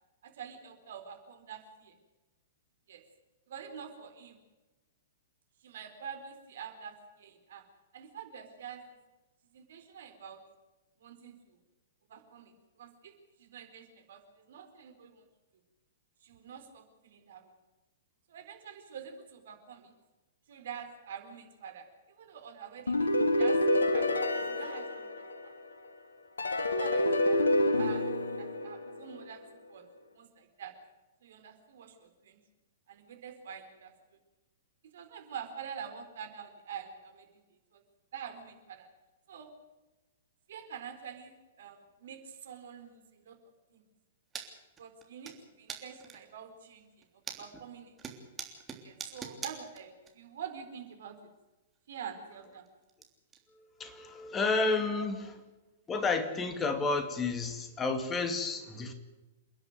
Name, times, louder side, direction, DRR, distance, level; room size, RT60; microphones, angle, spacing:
voice 1, 0.2-1.9 2.9-3.0 3.5-4.4 5.6-7.6 7.9-9.0 9.5-10.4 11.0-11.6 12.1-15.3 16.2-17.5 18.3-19.9 20.5-21.9 22.2-25.5 26.7-28.0 28.4-29.4 29.7-29.8 30.1-30.7 31.2-32.4 32.9-33.9 34.9-37.4 37.7-37.8 38.1-38.9 39.3-39.5 40.5-43.4 43.7-43.8 44.8-47.0 47.4-47.9 48.8-51.3 51.9-52.7 54.9-55.1, right 7 dB, 60° right, 6 dB, 4.1 m, -46 dB
sound 1, 22.9-25.7 26.4-29.2, left 1 dB, 80° left, 1.9 m, -28 dB
sound 2, 44.3-44.5 44.8-45.3 45.7-46.3 46.8-47.6 48.0-50.1 50.4-50.5 51.7-51.8 52.1-53.0 53.3-53.4 53.8-53.9 54.4-54.5 55.0-55.1 56.3-56.4, right 7 dB, 20° right, 3.3 m, -43 dB
voice 2, 53.8-55.2 55.9-58.9, left 3 dB, 20° left, 8 dB, 2.4 m, -31 dB
28.5 x 11.0 x 9.3 m, 1.1 s
figure-of-eight pair, 110°, 0 cm